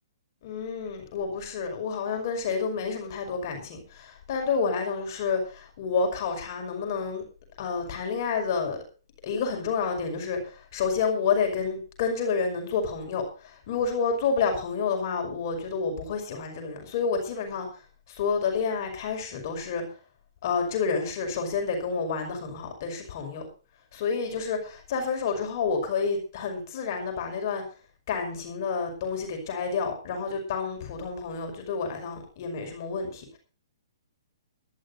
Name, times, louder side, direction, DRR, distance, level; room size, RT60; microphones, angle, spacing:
voice 1, 0.4-7.2 7.6-8.8 9.2-17.7 18.1-19.8 20.4-23.4 23.9-27.6 28.1-33.4, left 5 dB, 45° left, 3 dB, 5.7 m, -29 dB
22.5 x 12.5 x 2.7 m, 0.37 s
figure-of-eight pair, 125°, 3 cm